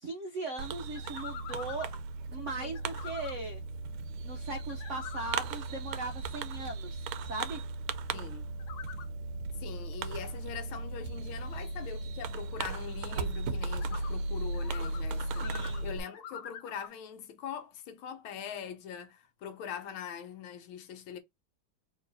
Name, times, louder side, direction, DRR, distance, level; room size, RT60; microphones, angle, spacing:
voice 1, 0.0-1.9 2.3-3.6 4.2-7.6 15.1-15.9, right 2 dB, 70° right, 0.7 m, -39 dB
Fireworks, 0.6-16.0, right 3 dB, 90° right, 1.4 m, -36 dB
sound 1, 0.9-2.0 2.7-3.3 4.6-5.3 8.6-9.1 13.7-14.1 14.5-15.0 15.3-16.9, left 8 dB, 65° left, 1.0 m, -45 dB
voice 2, 8.1-8.5 9.6-21.2, left 8 dB, 80° left, 1.6 m, -42 dB
3.4 x 3.0 x 3.9 m
omnidirectional pair, 2.2 m